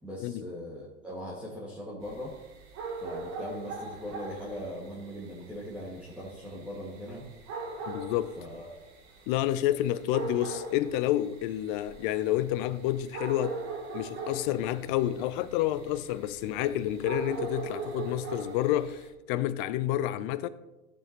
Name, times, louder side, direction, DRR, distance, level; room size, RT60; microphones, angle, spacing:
voice 1, 0.0-2.3 3.0-7.3 8.4-8.8, equal, 5° right, 1.9 m, -40 dB
sound 1, 2.0-19.1, right 3 dB, 45° right, 2.8 m, -41 dB
voice 2, 7.9-8.3 9.3-13.6 13.9-20.5, left 13 dB, 40° left, 0.6 m, -29 dB
14.5 x 7.3 x 3.0 m
hypercardioid pair, 100°, 39 cm